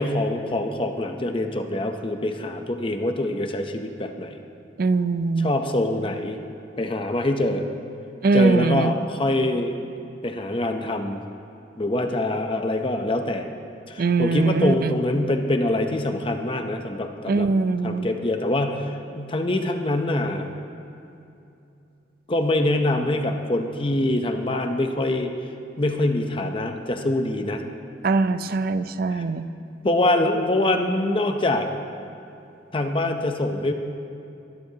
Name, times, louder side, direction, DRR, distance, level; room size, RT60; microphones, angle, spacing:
voice 1, 0.0-4.4 5.4-6.4 6.8-7.6 8.3-9.8 10.2-11.2 11.8-13.5 13.9-17.5 17.8-20.5 22.3-25.3 25.8-27.6 29.1-29.2 29.8-31.7 32.7-33.7, left 1 dB, 30° left, 5 dB, 0.7 m, -24 dB
voice 2, 4.8-5.5 8.2-9.0 14.0-15.0 17.3-18.1 28.0-29.5, right 3 dB, 50° right, 12 dB, 0.4 m, -22 dB
20.5 x 12.5 x 2.8 m, 2.7 s
head